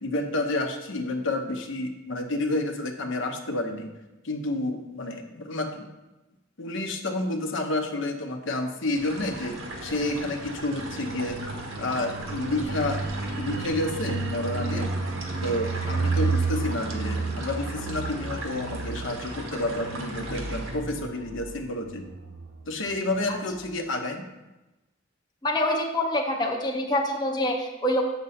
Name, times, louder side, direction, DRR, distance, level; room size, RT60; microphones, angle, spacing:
voice 1, 0.0-3.9 4.2-5.8 6.6-11.4 11.8-13.0 13.4-14.9 15.4-22.0 22.7-24.2, left 2 dB, 65° left, 4 dB, 0.8 m, -30 dB
sound 1, 8.9-20.8, right 1 dB, 85° right, 1.5 m, -38 dB
sound 2, 10.8-23.2 23.5-23.7, right 3 dB, 65° right, 0.7 m, -32 dB
voice 2, 25.4-28.1, left 1 dB, 20° left, 1 dB, 0.6 m, -26 dB
7.7 x 6.1 x 4.1 m, 1.0 s
head